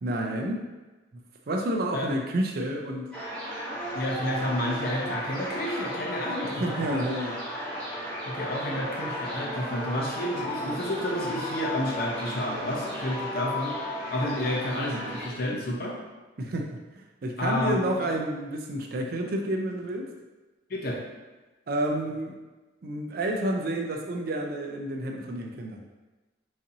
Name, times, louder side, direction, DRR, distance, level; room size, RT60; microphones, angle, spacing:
voice 1, 0.0-0.6 1.5-3.1 6.4-7.4 16.4-20.1 21.7-22.3 22.8-25.8, right 1 dB, 50° right, 1 dB, 0.4 m, -30 dB
sound 1, 3.1-15.3, left 1 dB, 5° left, 0.9 m, -34 dB
voice 2, 3.9-6.9 8.3-13.7 14.1-16.0 17.4-18.1 20.7-21.0, left 1 dB, 50° left, -2 dB, 0.6 m, -30 dB
4.0 x 2.6 x 2.7 m, 1.2 s
head